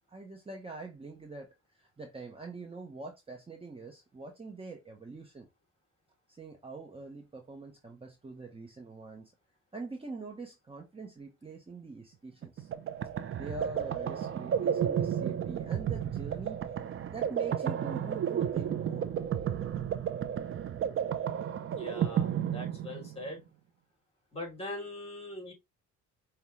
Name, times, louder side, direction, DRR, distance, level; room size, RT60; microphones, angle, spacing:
voice 1, 0.1-5.5 6.3-9.3 9.7-12.7 13.4-16.6 17.1-19.1, right 3 dB, 20° right, 0.9 m, -44 dB
sound 1, 12.4-23.3, right 9 dB, 45° right, 0.5 m, -32 dB
voice 2, 21.7-23.4 24.3-25.5, left 1 dB, 20° left, 2.6 m, -41 dB
5.4 x 2.3 x 3.0 m
cardioid pair, 90°, 30 cm